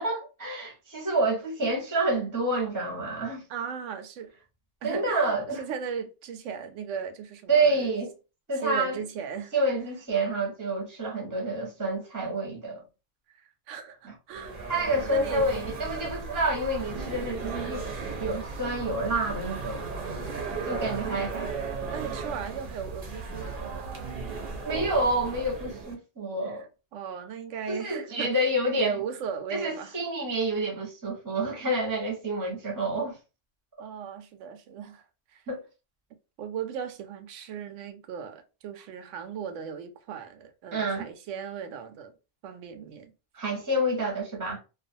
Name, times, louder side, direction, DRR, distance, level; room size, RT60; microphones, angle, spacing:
voice 1, 0.0-3.4 4.8-5.6 7.5-8.1 8.5-9.0 9.5-12.8 14.7-17.8 18.2-19.9 20.6-21.5 24.6-26.7 27.7-29.0 29.5-33.2 35.5-35.6 40.7-41.0 43.3-44.6, right 2 dB, 20° right, 0.7 m, -28 dB
voice 2, 3.5-4.3 4.8-7.9 8.6-9.5 13.4-14.6 15.1-15.5 20.9-24.1 26.5-26.6 26.9-28.3 28.8-30.0 33.8-35.0 35.3-35.4 36.4-42.1 42.4-43.1, right 7 dB, 80° right, 0.9 m, -37 dB
sound 1, 14.3-25.9, right 4 dB, 50° right, 0.7 m, -36 dB
2.4 x 2.4 x 2.6 m
omnidirectional pair, 1.3 m